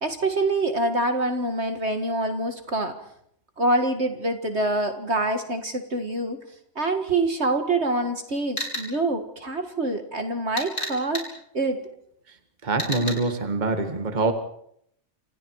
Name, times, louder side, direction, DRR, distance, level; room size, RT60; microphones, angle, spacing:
voice 1, 0.0-3.0 3.6-6.4 6.8-11.3 11.5-11.8, right 2 dB, 45° right, 6 dB, 2.1 m, -25 dB
sound 1, 8.6-8.9 10.6-11.3 12.8-13.1, equal, 40° left, 5.9 m, -30 dB
voice 2, 12.6-14.3, right 3 dB, 30° right, 6 dB, 2.0 m, -24 dB
28.0 x 27.5 x 4.8 m, 0.72 s
omnidirectional pair, 1.6 m